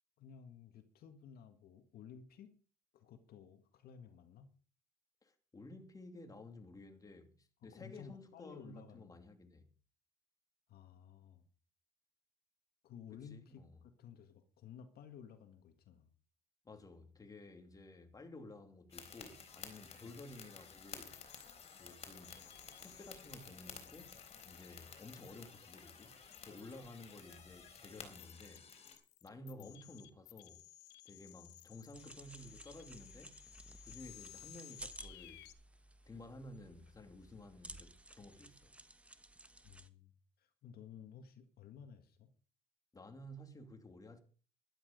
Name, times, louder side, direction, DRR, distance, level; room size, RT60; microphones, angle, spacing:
voice 1, 0.2-2.5 2.9-4.5 7.6-9.3 10.7-11.4 12.8-16.1 20.0-20.2 29.6-29.8 39.6-40.1 40.4-42.3, left 8 dB, 65° left, 1.9 m, -55 dB
voice 2, 5.2-9.7 13.1-13.7 16.6-21.2 21.8-22.5 22.8-24.2 24.4-26.1 26.4-28.6 29.2-30.6 31.0-33.3 33.8-35.5 36.1-38.7 42.9-44.2, left 2 dB, 20° left, 2.7 m, -53 dB
sound 1, 18.9-29.0, left 5 dB, 40° left, 3.7 m, -54 dB
sound 2, 21.1-35.5, left 15 dB, 90° left, 1.3 m, -58 dB
sound 3, 31.9-39.9, right 1 dB, 5° right, 1.2 m, -55 dB
12.5 x 11.5 x 5.2 m
cardioid pair, 110°, 17 cm